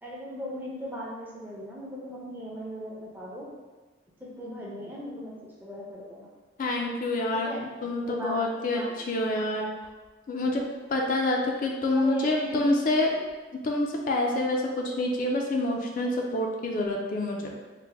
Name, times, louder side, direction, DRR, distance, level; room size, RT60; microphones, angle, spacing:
voice 1, 0.0-3.5 4.2-6.3 7.3-7.6 8.0-8.9 11.9-12.8 13.2-13.3, equal, 10° right, -5 dB, 0.5 m, -38 dB
voice 2, 6.6-9.7 10.3-10.6 10.9-13.1 13.6-17.5, left 2 dB, 45° left, 0 dB, 0.3 m, -27 dB
3.2 x 2.1 x 3.4 m, 1.3 s
head